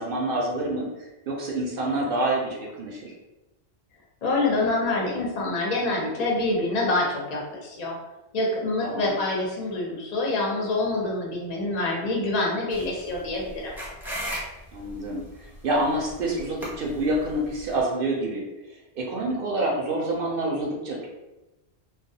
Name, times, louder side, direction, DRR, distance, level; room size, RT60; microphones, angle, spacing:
voice 1, 0.0-3.1 8.8-9.1 14.7-18.5 19.0-21.1, right 1 dB, 60° right, -2 dB, 0.7 m, -27 dB
voice 2, 4.2-8.0 8.3-13.7, left 2 dB, 45° left, -2 dB, 0.6 m, -26 dB
sound 1, 12.7-17.8, equal, 5° right, 0.4 m, -38 dB
2.3 x 2.2 x 2.7 m, 1.0 s
omnidirectional pair, 1.1 m